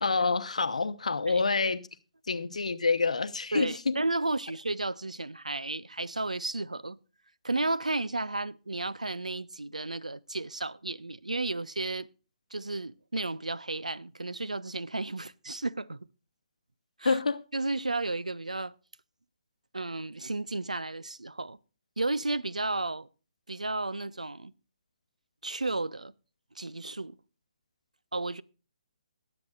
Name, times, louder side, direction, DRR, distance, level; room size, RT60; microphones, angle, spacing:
voice 1, 0.0-1.8 2.3-3.9 17.0-17.4, left 4 dB, 70° left, 0.8 m, -27 dB
voice 2, 3.5-7.0 7.4-12.1 12.5-16.1 17.0-17.2 17.5-18.7 19.7-21.6 22.0-23.1 23.5-24.5 25.4-26.1 26.6-27.2 28.1-28.4, right 2 dB, 85° right, 0.4 m, -33 dB
21.0 x 7.8 x 2.4 m
figure-of-eight pair, 135°, 4 cm